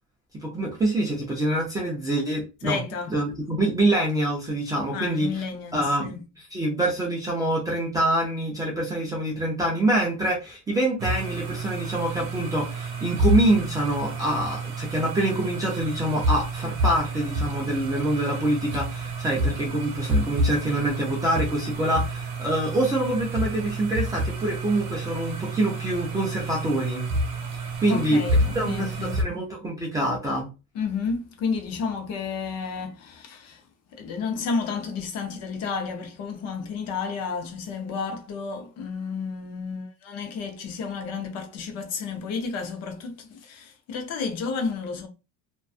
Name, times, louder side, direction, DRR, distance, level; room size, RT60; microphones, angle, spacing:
voice 1, 0.4-2.8 3.1-5.3 5.7-6.1 6.5-27.1 27.8-28.2 28.5-30.5, right 1 dB, 10° right, 0.3 m, -25 dB
voice 2, 2.6-3.2 4.9-6.2 27.9-29.2 30.7-33.6 33.9-45.1, left 5 dB, 45° left, 0.6 m, -31 dB
sound 1, 11.0-29.2, right 1 dB, 75° right, 0.9 m, -29 dB
2.6 x 2.2 x 2.3 m
cardioid pair, 170°, 37 cm